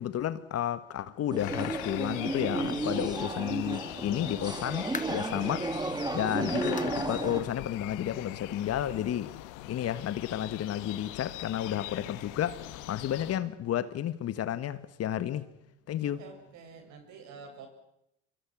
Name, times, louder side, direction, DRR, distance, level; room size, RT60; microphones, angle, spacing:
voice 1, 0.0-5.6 6.1-9.3 9.7-12.6 12.9-15.4 15.9-16.2, left 11 dB, 45° left, 14 dB, 1.7 m, -32 dB
sound 1, 1.3-7.4, right 2 dB, 10° right, 2.4 m, -33 dB
sound 2, 1.4-13.4, left 16 dB, 70° left, 1.6 m, -42 dB
sound 3, 4.9-5.4 5.9-6.0 6.8-7.0 7.4-7.5 8.0-8.1 9.1-9.2, left 5 dB, 25° left, 2.2 m, -42 dB
voice 2, 16.0-17.7, right 5 dB, 60° right, 5 dB, 7.1 m, -48 dB
26.5 x 23.0 x 6.4 m, 0.81 s
hypercardioid pair, 75°, 32 cm